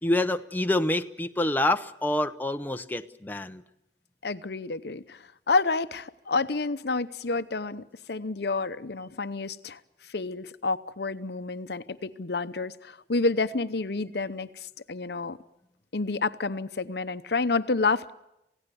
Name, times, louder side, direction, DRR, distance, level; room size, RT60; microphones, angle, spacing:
voice 1, 0.0-3.6, left 1 dB, 10° left, 0.7 m, -27 dB
voice 2, 4.2-9.8 10.1-15.4 15.9-18.1, left 3 dB, 65° left, 0.8 m, -29 dB
28.0 x 17.0 x 7.0 m
head